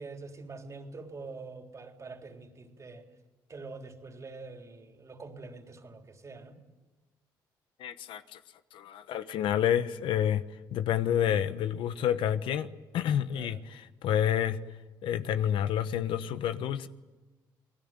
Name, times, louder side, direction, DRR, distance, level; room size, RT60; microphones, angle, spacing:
voice 1, 0.0-3.0 3.5-6.6 13.3-13.6, right 3 dB, 35° right, 4 dB, 3.7 m, -45 dB
voice 2, 7.8-8.4 8.7-10.4 10.7-14.6 15.0-16.9, left 10 dB, 80° left, 11 dB, 1.1 m, -29 dB
28.0 x 19.5 x 9.1 m, 1.2 s
cardioid pair, 80°, 9 cm